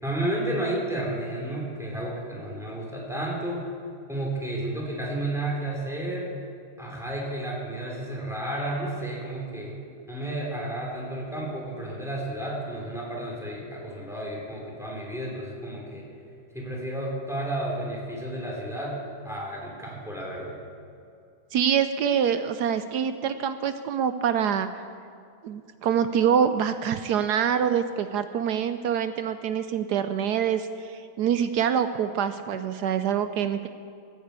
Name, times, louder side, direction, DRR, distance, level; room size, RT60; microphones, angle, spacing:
voice 1, 0.0-3.7 4.1-6.3 6.8-9.7 10.1-16.1 16.5-19.0 19.2-20.5, right 1 dB, ahead, -3 dB, 3.5 m, -32 dB
voice 2, 21.5-24.7 25.4-33.7, right 8 dB, 75° right, 10 dB, 0.9 m, -25 dB
15.0 x 8.9 x 8.2 m, 2.4 s
omnidirectional pair, 2.2 m